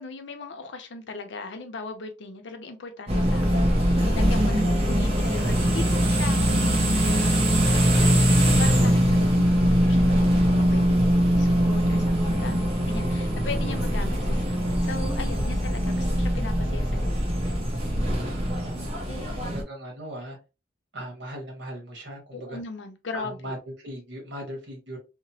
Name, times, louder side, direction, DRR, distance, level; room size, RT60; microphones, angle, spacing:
voice 1, 0.0-17.4 19.0-19.5 22.3-23.5, left 3 dB, 75° left, 0.6 m, -38 dB
sound 1, 3.1-19.6, equal, 35° right, 0.8 m, -22 dB
voice 2, 18.1-20.4 20.9-22.6 23.1-25.0, right 1 dB, 70° right, 1.2 m, -39 dB
2.9 x 2.0 x 2.7 m
head